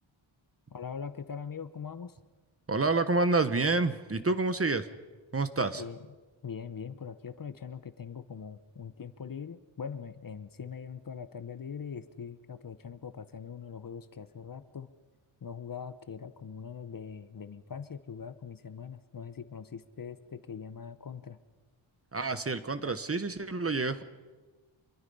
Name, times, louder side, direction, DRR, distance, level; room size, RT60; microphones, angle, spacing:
voice 1, 0.7-2.2 5.7-6.2 6.4-14.9 15.4-21.4, left 6 dB, 45° left, 12 dB, 0.9 m, -42 dB
voice 2, 2.7-4.9 5.3-5.8 22.1-24.0, right 3 dB, 30° right, 12 dB, 1.1 m, -28 dB
25.5 x 23.0 x 5.5 m, 1.3 s
wide cardioid pair, 120°, 49 cm